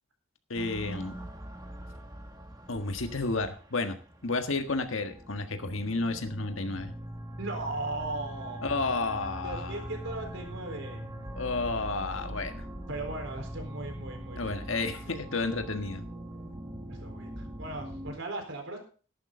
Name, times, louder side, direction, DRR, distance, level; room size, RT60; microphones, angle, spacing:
voice 1, 0.5-1.1 2.7-4.0 4.2-6.9 8.6-9.8 11.3-12.7 14.4-16.0, left 3 dB, 80° left, 6 dB, 1.6 m, -31 dB
sound 1, 0.5-18.1, right 1 dB, 20° right, 1.6 m, -42 dB
voice 2, 7.4-8.8 9.4-11.1 12.9-15.2 16.9-18.8, right 2 dB, 70° right, 4 dB, 4.1 m, -38 dB
14.0 x 11.0 x 3.8 m, 0.39 s
head